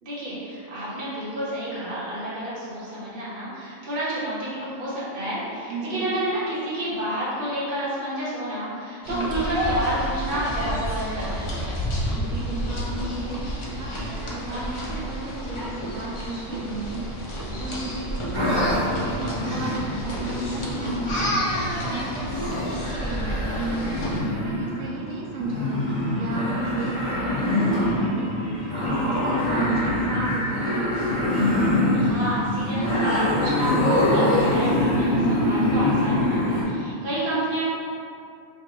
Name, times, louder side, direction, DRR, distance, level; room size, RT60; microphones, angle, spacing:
voice 1, 0.0-11.5 31.9-37.7, right 1 dB, 45° right, -9 dB, 1.1 m, -30 dB
voice 2, 5.7-6.1 9.1-9.4 12.0-30.9, right 2 dB, 80° right, -4 dB, 1.2 m, -34 dB
sound 1, 9.0-24.2, equal, 55° left, 0.3 m, -30 dB
sound 2, 18.3-36.6, left 1 dB, 25° left, 1.4 m, -24 dB
3.3 x 2.5 x 4.5 m, 2.5 s
omnidirectional pair, 1.4 m